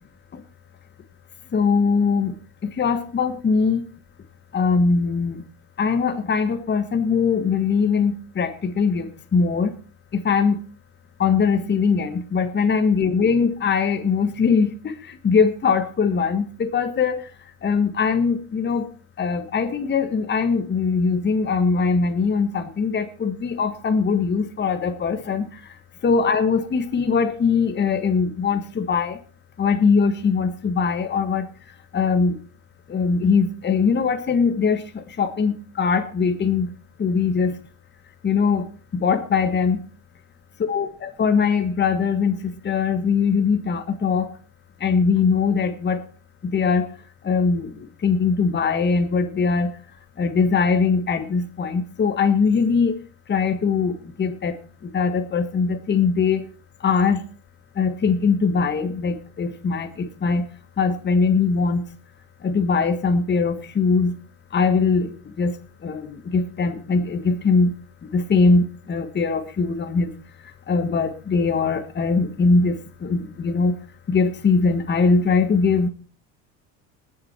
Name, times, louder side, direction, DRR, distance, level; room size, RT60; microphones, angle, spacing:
voice 1, 1.5-2.3 2.8-3.8 4.5-5.4 5.8-9.7 10.1-10.6 11.2-14.9 15.2-17.2 17.6-18.8 19.2-25.4 26.0-29.2 29.6-31.4 31.9-32.3 32.9-36.7 37.0-37.5 38.2-38.7 38.9-39.8 40.7-44.3 44.8-46.0 46.5-46.9 47.2-47.7 48.0-49.7 50.2-52.9 53.3-54.6 54.9-56.4 56.8-57.2 57.8-60.4 60.8-61.8 62.4-64.1 64.5-65.5 65.8-67.7 68.1-70.1 70.7-73.7 74.1-75.9, left 5 dB, 25° left, 8 dB, 1.5 m, -21 dB
19.5 x 7.8 x 4.4 m, 0.37 s
supercardioid pair, 100°, 40 cm